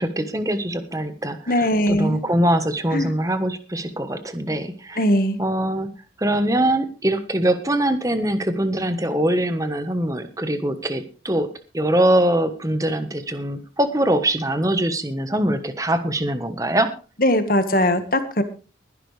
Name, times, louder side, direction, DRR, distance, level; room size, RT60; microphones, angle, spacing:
voice 1, 0.0-5.0 5.4-5.9 6.2-11.5 11.7-16.9, right 1 dB, 20° right, 10 dB, 1.3 m, -23 dB
voice 2, 1.5-2.2 2.9-3.1 5.0-5.4 17.2-18.4, left 1 dB, 50° left, 9 dB, 1.7 m, -20 dB
20.5 x 11.0 x 3.4 m, 0.34 s
head